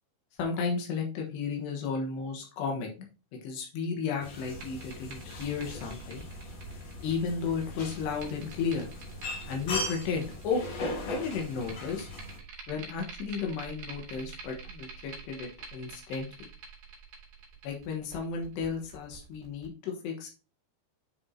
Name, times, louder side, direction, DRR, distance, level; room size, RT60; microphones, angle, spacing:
voice 1, 0.4-3.1 3.4-6.2 7.0-8.9 9.5-10.6 11.0-12.1 12.7-16.5 17.6-20.3, left 5 dB, 85° left, 1 dB, 3.5 m, -33 dB
sound 1, 4.2-12.4, left 1 dB, 50° left, 2.3 m, -39 dB
sound 2, 4.4-19.7, right 5 dB, 65° right, 3.8 m, -47 dB
9.5 x 4.9 x 2.9 m, 0.32 s
omnidirectional pair, 4.8 m